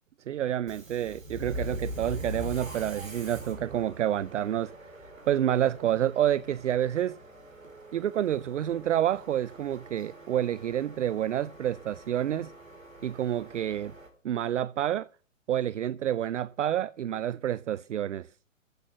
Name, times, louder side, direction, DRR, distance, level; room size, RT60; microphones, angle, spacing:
voice 1, 0.3-4.7 5.3-7.2 7.9-12.5 13.0-13.9 14.2-15.1 15.5-18.3, right 11 dB, 60° right, 0.5 m, -28 dB
Subway metro underground, 0.6-14.1, right 1 dB, 80° right, 4.4 m, -43 dB
14.5 x 6.1 x 8.9 m
figure-of-eight pair, 120°, 40 cm